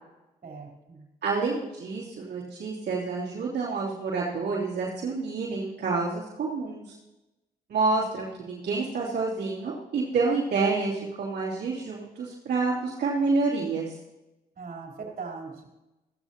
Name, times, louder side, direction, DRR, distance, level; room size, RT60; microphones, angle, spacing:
voice 1, 0.4-1.1 14.6-15.7, right 4 dB, 60° right, -1 dB, 4.1 m, -40 dB
voice 2, 1.2-6.9 7.7-13.9, right 4 dB, 80° right, -7 dB, 3.1 m, -28 dB
16.0 x 14.0 x 3.0 m, 0.99 s
cardioid pair, 60°, 17 cm